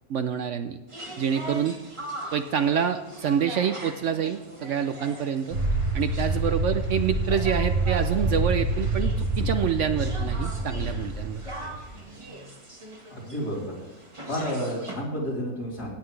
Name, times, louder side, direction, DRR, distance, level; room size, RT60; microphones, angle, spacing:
voice 1, 0.1-0.8 1.2-1.8 2.3-5.6 5.9-11.4, right 8 dB, 65° right, 9 dB, 0.7 m, -27 dB
sound 1, 0.9-15.0, right 1 dB, 20° right, 1.4 m, -41 dB
sound 2, 5.5-12.0, right 2 dB, 50° right, 3.8 m, -27 dB
voice 2, 13.1-13.6 14.3-15.9, equal, 90° left, -5 dB, 4.2 m, -30 dB
17.5 x 7.9 x 3.3 m, 1.1 s
omnidirectional pair, 1.7 m